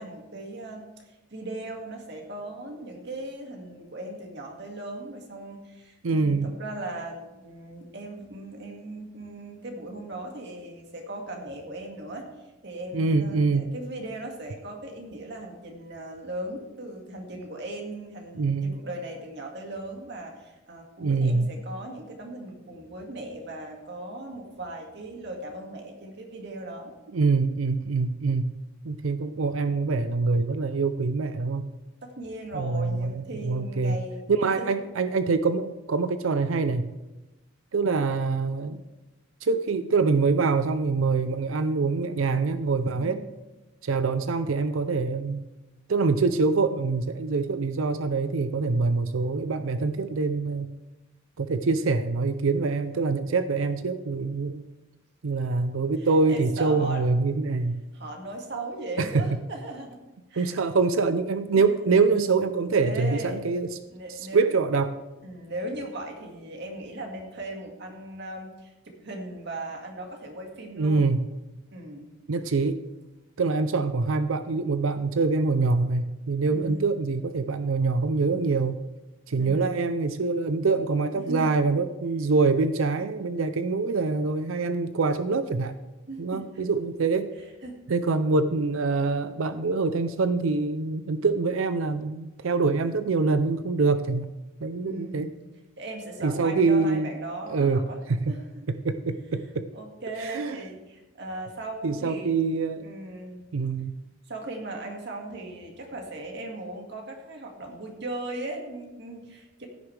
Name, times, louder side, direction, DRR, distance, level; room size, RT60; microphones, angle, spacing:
voice 1, 0.0-12.3 12.6-26.9 32.0-34.3 34.6-34.7 42.9-43.2 56.0-57.1 57.9-60.0 60.3-60.6 61.5-62.0 62.8-63.5 63.9-64.5 65.2-71.0 71.7-72.1 76.5-76.9 79.4-80.0 81.3-81.6 86.1-86.6 87.6-87.8 94.8-95.3 95.8-98.0 98.3-98.7 99.7-102.3 102.8-103.4 104.3-109.7, right 1 dB, 55° right, 2 dB, 2.0 m, -38 dB
voice 2, 6.0-6.5 12.9-13.7 18.3-18.7 21.0-21.5 27.1-28.5 28.8-31.6 32.5-34.0 34.3-36.9 37.7-38.8 39.4-43.2 43.8-45.4 45.9-50.7 51.4-54.6 55.2-57.8 59.0-59.3 60.4-63.7 64.3-65.0 70.8-71.2 72.3-72.8 73.4-78.8 79.3-85.7 86.2-87.3 87.9-94.3 94.6-95.3 96.2-97.1 97.5-97.8 98.1-98.3 98.8-99.7 100.2-100.6 101.8-102.9 103.5-103.9, right 4 dB, 80° right, 11 dB, 0.5 m, -25 dB
15.5 x 9.6 x 3.3 m, 1.1 s
head